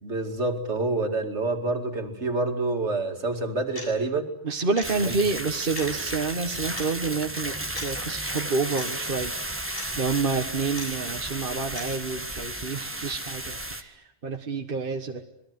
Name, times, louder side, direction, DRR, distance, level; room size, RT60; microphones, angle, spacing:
voice 1, 0.0-4.3 5.1-5.2, right 2 dB, 65° right, 5 dB, 2.7 m, -27 dB
sound 1, 3.7-3.9 4.8-4.9 5.7-5.9 6.8-6.9 7.7-7.9 8.8-8.9 9.7-9.9 10.8-10.9 11.7-11.8, left 2 dB, 50° left, 7.6 m, -37 dB
voice 2, 4.4-15.2, right 4 dB, 45° right, 4 dB, 1.6 m, -29 dB
sound 2, 4.8-13.8, right 1 dB, 10° right, 1.5 m, -33 dB
26.5 x 21.0 x 9.6 m, 0.80 s
omnidirectional pair, 1.3 m